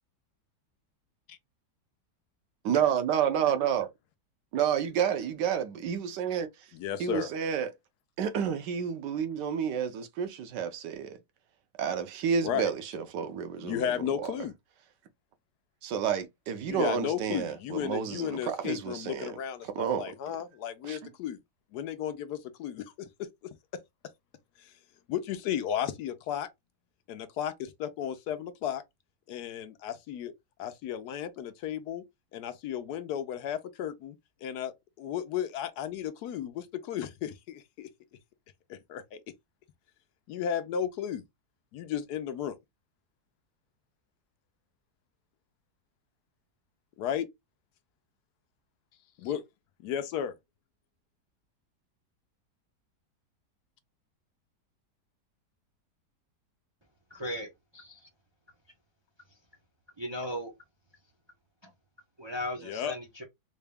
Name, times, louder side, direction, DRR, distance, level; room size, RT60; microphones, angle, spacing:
voice 1, 2.6-3.9 4.5-6.5 7.0-7.7 8.2-11.2 11.8-13.9 14.2-14.5 15.8-20.1 20.8-21.0, right 8 dB, 90° right, 1.3 m, -30 dB
voice 2, 6.7-7.3 12.4-12.7 13.6-14.5 16.7-21.4 21.7-23.3 23.7-23.8 25.1-26.5 27.1-28.8 29.3-30.3 30.6-32.0 32.3-34.2 34.4-34.7 35.0-37.9 38.7-39.2 40.3-41.2 41.7-42.6 47.0-47.3 49.2-49.4 49.8-50.3 62.6-62.9, left 9 dB, 75° left, 1.1 m, -34 dB
voice 3, 57.1-58.1 60.0-60.5 61.6-61.7 62.2-63.2, left 1 dB, 40° right, 0.3 m, -37 dB
3.9 x 2.2 x 3.3 m
omnidirectional pair, 1.8 m